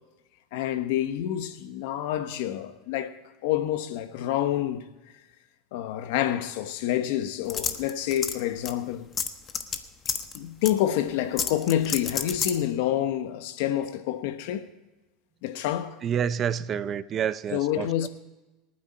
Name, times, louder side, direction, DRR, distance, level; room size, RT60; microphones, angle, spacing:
voice 1, 0.5-3.2 3.4-4.8 5.7-9.1 10.3-14.7 15.4-16.0 17.5-18.1, left 12 dB, 75° left, 1.2 m, -28 dB
sound 1, 7.5-8.4 8.6-8.7 9.2-9.8 10.1-10.4 10.6-10.7 11.4-12.6, left 7 dB, 30° left, 1.1 m, -29 dB
voice 2, 16.0-18.1, right 8 dB, 35° right, 0.6 m, -28 dB
26.5 x 9.5 x 4.3 m
supercardioid pair, 130°, 0 cm